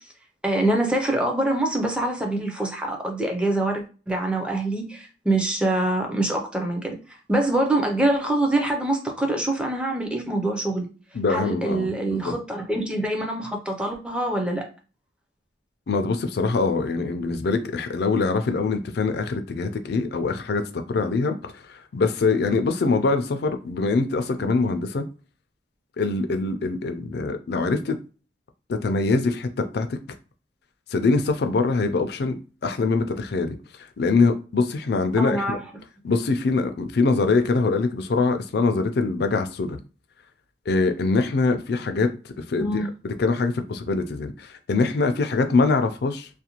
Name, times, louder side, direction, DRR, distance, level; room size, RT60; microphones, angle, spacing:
voice 1, 0.4-7.0 7.3-10.9 11.3-14.6 35.2-35.6 42.6-42.9, right 1 dB, 5° right, 0.4 m, -25 dB
voice 2, 11.1-12.3 15.9-20.6 20.9-25.0 26.0-28.0 28.7-30.0 30.9-33.6 34.0-35.6 36.0-39.8 40.7-42.1 42.5-46.3, left 3 dB, 60° left, 0.4 m, -23 dB
2.5 x 2.1 x 2.9 m
head